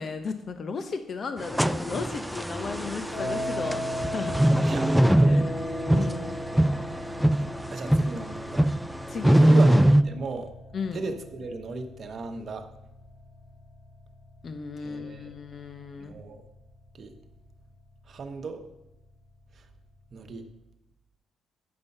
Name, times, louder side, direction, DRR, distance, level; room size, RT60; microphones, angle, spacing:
voice 1, 0.0-4.4 5.2-5.4 5.9-6.4 9.1-9.6 10.7-11.0 14.4-16.1, left 5 dB, 45° left, 9 dB, 0.7 m, -35 dB
sound 1, 1.4-10.0, right 1 dB, ahead, 0.3 m, -23 dB
sound 2, 2.5-20.4, left 1 dB, 80° left, 3.9 m, -39 dB
voice 2, 4.6-5.5 7.7-8.7 9.3-10.5 10.9-12.7 14.8-15.3 16.0-16.4 17.0-17.1 18.1-18.6 20.1-20.5, right 4 dB, 50° right, 5 dB, 1.1 m, -36 dB
9.6 x 5.4 x 5.4 m, 0.89 s
cardioid pair, 90°, 0 cm